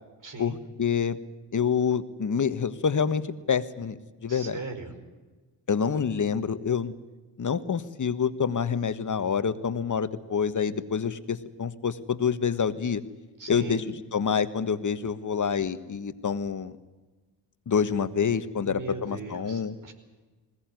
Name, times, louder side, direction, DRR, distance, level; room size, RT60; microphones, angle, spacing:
voice 1, 0.2-0.6 4.3-4.9 13.4-13.8 18.5-19.9, right 4 dB, 40° right, 7 dB, 5.1 m, -39 dB
voice 2, 0.8-1.2 1.5-3.2 3.5-4.6 5.7-6.9 7.4-13.0 13.5-13.8 14.1-16.7 17.7-19.7, left 6 dB, 35° left, 12 dB, 1.5 m, -27 dB
20.5 x 17.5 x 9.3 m, 1.2 s
supercardioid pair, 55°, 49 cm